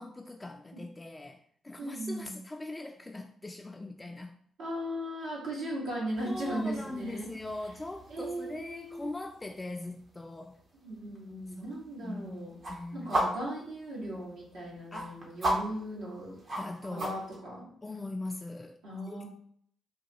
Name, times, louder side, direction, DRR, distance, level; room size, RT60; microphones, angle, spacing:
voice 1, 0.0-4.4 6.2-10.6 12.0-12.4 12.7-13.3 14.9-15.2 16.6-17.2 17.8-19.2, left 2 dB, 25° left, 3 dB, 0.3 m, -41 dB
voice 2, 1.8-2.3 4.6-7.3 8.1-9.1 10.8-12.5 12.9-16.4 16.9-17.7 18.8-19.2, right 1 dB, 80° right, -6 dB, 1.3 m, -37 dB
sound 1, 6.1-17.4, right 1 dB, 55° right, 0.9 m, -38 dB
3.7 x 2.2 x 2.8 m, 0.63 s
hypercardioid pair, 50°, 0 cm